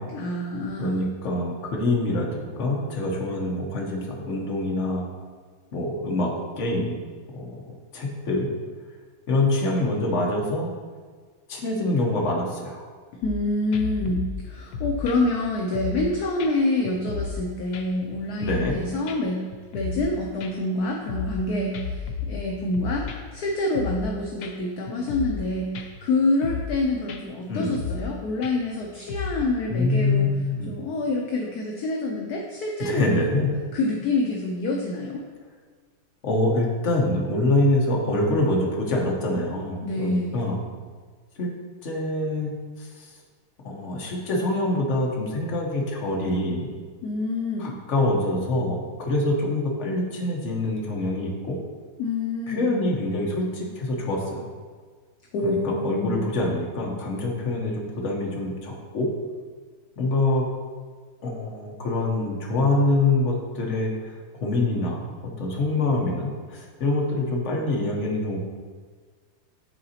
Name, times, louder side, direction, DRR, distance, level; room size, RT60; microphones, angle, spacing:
voice 1, 0.1-1.0 13.2-19.4 19.7-30.3 30.7-33.4 33.7-35.2 39.8-40.4 47.0-47.7 52.0-52.7 55.3-56.2, left 2 dB, 65° left, 0 dB, 1.0 m, -27 dB
voice 2, 0.8-5.0 5.7-7.0 7.3-7.6 7.9-8.5 9.3-10.7 11.5-12.8 18.4-18.7 27.5-27.8 29.7-30.7 32.8-33.5 36.2-40.6 41.4-41.5 41.8-43.1 43.6-46.7 47.6-51.6 52.5-54.5 55.4-59.1 60.0-60.5 61.2-68.4, left 2 dB, 45° left, -1 dB, 1.2 m, -25 dB
sound 1, 13.2-13.4 13.7-16.1 16.4-16.5 16.8-17.4 17.7-18.8 19.1-19.2 19.5-20.1 20.4-21.4 21.7-23.4 23.7-24.1 24.4-24.5 24.9-25.5 25.8-26.1 26.4-26.8 27.1-27.2 27.5-28.1 28.4-29.5, left 5 dB, 85° left, 0.7 m, -33 dB
11.0 x 3.9 x 2.9 m, 1.5 s
omnidirectional pair, 2.1 m